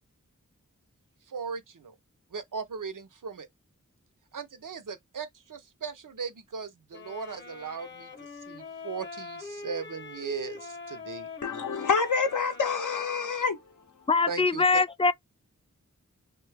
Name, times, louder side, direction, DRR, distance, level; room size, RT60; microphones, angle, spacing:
voice 1, 1.3-1.9 2.3-3.5 4.3-8.1 8.5-11.3 14.3-14.8, right 5 dB, 80° right, 0.6 m, -38 dB
sound 1, 6.9-13.5, left 4 dB, 35° left, 0.8 m, -43 dB
voice 2, 11.4-13.6, left 5 dB, 75° left, 0.5 m, -27 dB
voice 3, 14.1-15.1, left 3 dB, 20° left, 0.3 m, -23 dB
2.7 x 2.3 x 3.2 m
wide cardioid pair, 40°, 31 cm